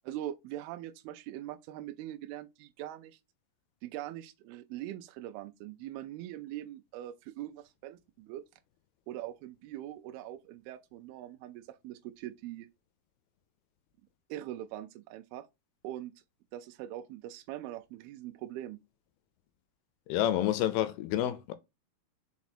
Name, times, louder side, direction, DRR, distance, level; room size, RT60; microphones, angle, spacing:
voice 1, 0.0-3.2 3.8-8.4 9.1-12.7 14.3-15.5 15.8-16.1 16.5-18.8, right 13 dB, 80° right, 2.4 m, -42 dB
voice 2, 20.1-21.5, left 12 dB, 80° left, 2.4 m, -29 dB
5.9 x 4.3 x 4.2 m
omnidirectional pair, 4.6 m